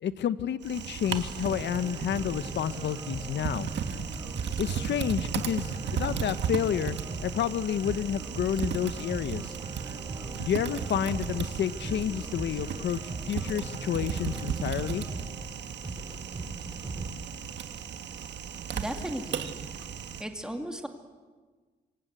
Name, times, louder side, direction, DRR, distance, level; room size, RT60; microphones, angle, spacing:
voice 1, 0.0-3.7 4.6-7.0 7.2-9.5 10.4-15.0, left 9 dB, 80° left, 13 dB, 1.1 m, -30 dB
Typing, 0.6-20.2, right 7 dB, 80° right, 1.8 m, -35 dB
sound 1, 1.1-17.1, right 3 dB, 25° right, 3.1 m, -40 dB
voice 2, 18.8-19.5 20.2-20.9, right 1 dB, 5° right, 4 dB, 2.4 m, -35 dB
27.5 x 24.5 x 8.1 m, 1.4 s
wide cardioid pair, 150°, 18 cm